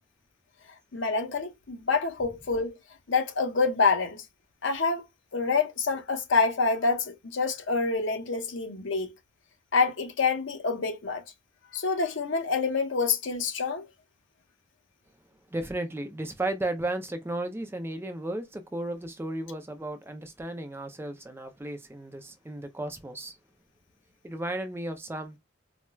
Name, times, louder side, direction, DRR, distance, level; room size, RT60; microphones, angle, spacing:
voice 1, 0.9-2.8 3.1-4.2 4.6-5.0 5.3-9.1 9.7-11.2 11.7-13.8, left 4 dB, 75° left, 0.7 m, -27 dB
voice 2, 15.5-23.4 24.2-25.4, right 1 dB, 10° right, 0.4 m, -34 dB
4.3 x 2.0 x 2.2 m
head